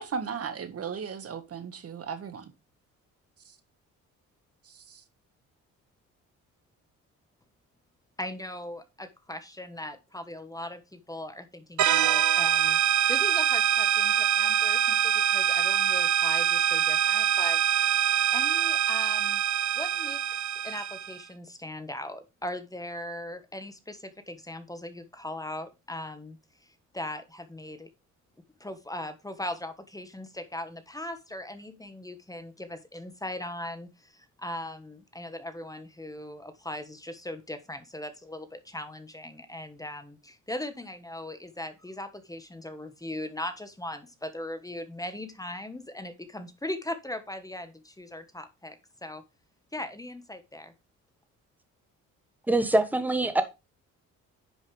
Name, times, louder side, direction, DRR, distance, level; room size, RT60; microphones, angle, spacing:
voice 1, 0.0-2.5 4.7-5.0, right 6 dB, 50° right, 1.5 m, -36 dB
voice 2, 8.2-17.6 18.3-19.4 19.8-26.4 26.9-27.9 28.6-49.2 49.7-50.7, left 1 dB, 10° left, 1.3 m, -39 dB
sound 1, 11.8-21.2, right 10 dB, 70° right, 0.9 m, -24 dB
voice 3, 52.5-53.4, right 2 dB, 5° right, 1.3 m, -24 dB
10.0 x 5.6 x 3.3 m
cardioid pair, 90°, 30 cm